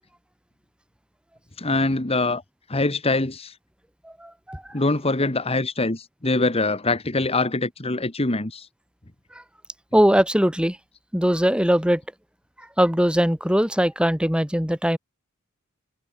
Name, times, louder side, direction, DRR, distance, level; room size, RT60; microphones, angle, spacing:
voice 1, 1.6-2.4 2.7-3.5 4.7-8.7, left 2 dB, 30° left, 1.7 m, -23 dB
voice 2, 4.2-4.6 9.9-10.8 11.1-12.0 12.8-15.0, equal, 5° right, 2.9 m, -20 dB
head